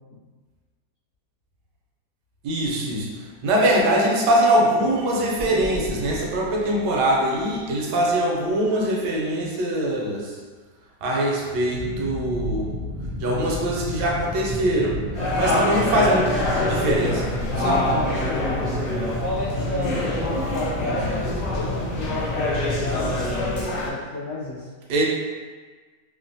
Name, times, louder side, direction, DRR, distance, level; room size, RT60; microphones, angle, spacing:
voice 1, 2.4-10.4 11.0-12.8 13.2-15.0 15.3-17.9 24.9-25.0, right 1 dB, 80° right, -3 dB, 1.2 m, -23 dB
sound 1, 5.4-9.0, equal, 40° left, 0.5 m, -38 dB
sound 2, 11.7-23.6, left 1 dB, 55° right, 0.7 m, -31 dB
voice 2, 14.9-15.9 17.8-18.5 19.2-23.2 23.8-24.7, left 2 dB, 90° left, -8 dB, 0.6 m, -32 dB
sound 3, 15.1-23.9, left 1 dB, 70° left, 1.1 m, -26 dB
3.1 x 2.0 x 2.6 m, 1.4 s
omnidirectional pair, 1.8 m